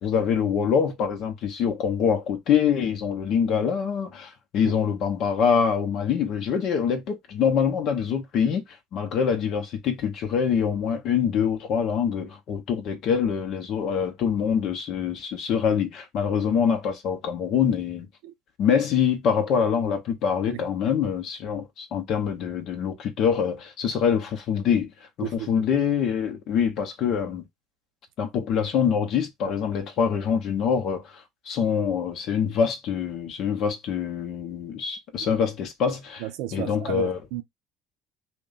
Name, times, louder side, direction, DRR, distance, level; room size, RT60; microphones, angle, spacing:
voice 1, 0.0-18.1 18.6-24.9 25.2-27.5 28.2-37.2, left 7 dB, 55° left, 0.7 m, -25 dB
voice 2, 36.2-37.4, right 13 dB, 70° right, 0.4 m, -33 dB
2.3 x 2.2 x 3.8 m
hypercardioid pair, 65°, 0 cm